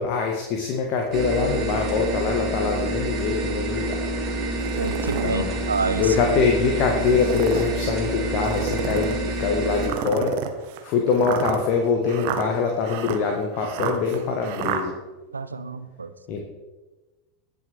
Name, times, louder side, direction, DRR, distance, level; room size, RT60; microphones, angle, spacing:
voice 1, 0.0-4.0 5.2-5.7 6.0-10.4 10.8-14.9 16.3-16.4, left 5 dB, 45° left, 2 dB, 1.5 m, -24 dB
sound 1, 1.1-9.9, right 2 dB, 35° right, 2.8 m, -28 dB
sound 2, 4.6-5.3 5.9-6.0 7.1-7.7 8.4-9.2 9.8-14.8, right 9 dB, 50° right, 1.1 m, -30 dB
voice 2, 4.8-6.0 15.3-16.1, right 4 dB, 80° right, 11 dB, 0.6 m, -28 dB
19.5 x 6.5 x 3.5 m, 1.2 s
figure-of-eight pair, 80°, 0 cm